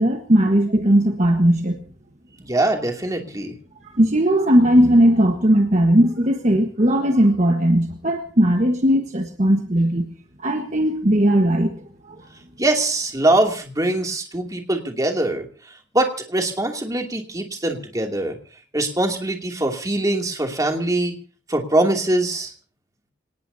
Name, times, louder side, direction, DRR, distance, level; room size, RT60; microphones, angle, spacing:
voice 1, 0.0-1.8 3.9-10.1 10.4-11.8 12.0-12.2, equal, 40° right, 4 dB, 1.4 m, -18 dB
voice 2, 2.4-3.5 12.6-15.5 15.9-18.4 18.7-21.1 21.5-22.5, right 2 dB, 20° right, 2 dB, 2.7 m, -22 dB
26.5 x 19.0 x 2.8 m, 0.40 s
head